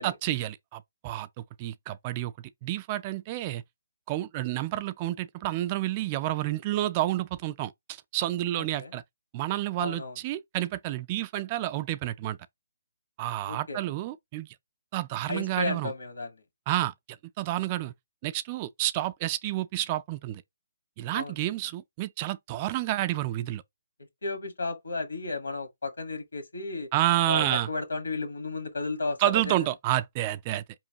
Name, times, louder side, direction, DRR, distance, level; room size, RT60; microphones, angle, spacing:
voice 1, 0.0-2.3 2.6-3.6 4.1-9.0 9.3-12.4 13.2-14.5 14.9-15.9 16.7-16.9 17.4-17.9 18.2-20.4 21.0-23.6 26.9-27.7 29.2-30.6, right 15 dB, 30° right, 0.3 m, -29 dB
voice 2, 9.8-10.1 13.5-13.8 15.3-16.3 21.1-21.3 24.2-26.9 27.3-29.5, left 3 dB, 85° left, 1.4 m, -33 dB
4.4 x 2.9 x 2.8 m
hypercardioid pair, 150°, 0 cm